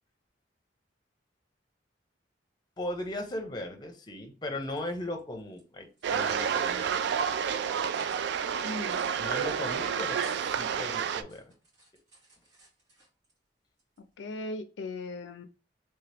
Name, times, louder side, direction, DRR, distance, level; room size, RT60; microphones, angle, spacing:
voice 1, 2.8-7.0 9.2-11.4, left 1 dB, 25° left, 4 dB, 0.7 m, -37 dB
sound 1, 4.6-5.6 5.9-6.8 7.2-7.5 7.9-8.4 8.8-9.2 9.5-9.6 9.8-10.7 11.2-13.4 13.8-14.4, right 1 dB, 80° right, 2.0 m, -57 dB
sound 2, 6.0-11.2, right 7 dB, 65° right, 0.3 m, -30 dB
voice 2, 8.6-9.0 14.2-15.5, left 2 dB, 75° left, 9 dB, 0.4 m, -38 dB
3.2 x 2.9 x 3.3 m, 0.33 s
head